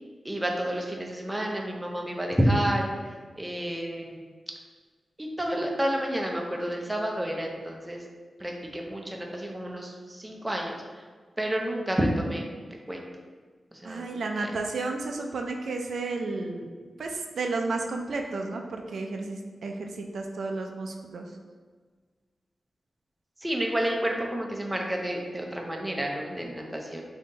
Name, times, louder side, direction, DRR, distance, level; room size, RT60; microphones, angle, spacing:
voice 1, 0.2-2.9 3.4-4.2 5.2-8.0 8.4-10.7 11.4-12.4 12.9-13.0 13.8-14.1 14.4-14.5 23.4-27.0, right 1 dB, 10° right, 0 dB, 0.4 m, -29 dB
voice 2, 13.8-16.7 17.0-21.3, right 3 dB, 75° right, 3 dB, 0.4 m, -32 dB
3.6 x 2.7 x 3.9 m, 1.5 s
wide cardioid pair, 170°, 0 cm